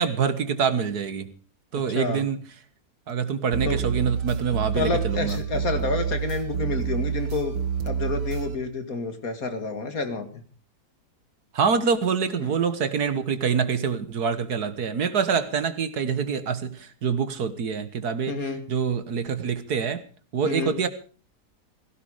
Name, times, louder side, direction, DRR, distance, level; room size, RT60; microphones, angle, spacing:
voice 1, 0.0-1.3 1.7-2.4 3.1-5.4 11.5-18.4 18.7-20.0 20.3-20.9, right 6 dB, 70° right, 12 dB, 1.9 m, -25 dB
voice 2, 1.9-2.2 3.6-3.8 4.7-7.6 7.8-10.4 12.4-12.5 18.3-18.7 20.4-20.8, left 3 dB, 55° left, 8 dB, 2.5 m, -29 dB
sound 1, 3.5-8.6, right 7 dB, 90° right, 1.7 m, -28 dB
17.0 x 16.5 x 5.0 m, 0.40 s
omnidirectional pair, 1.8 m